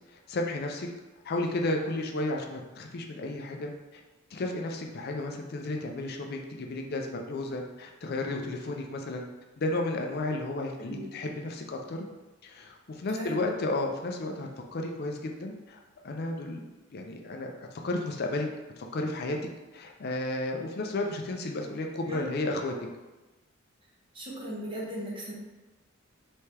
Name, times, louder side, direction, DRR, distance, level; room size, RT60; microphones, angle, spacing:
voice 1, 0.3-0.9 1.2-4.0 4.3-9.2 9.6-12.0 12.4-16.7 16.9-17.5 17.8-18.5 18.8-19.4 19.7-22.7, left 2 dB, 55° left, 2 dB, 0.4 m, -33 dB
voice 2, 10.8-11.1 13.1-13.6 22.1-22.2 24.1-25.3, equal, 25° right, -4 dB, 1.0 m, -37 dB
4.3 x 3.4 x 3.3 m, 1.1 s
head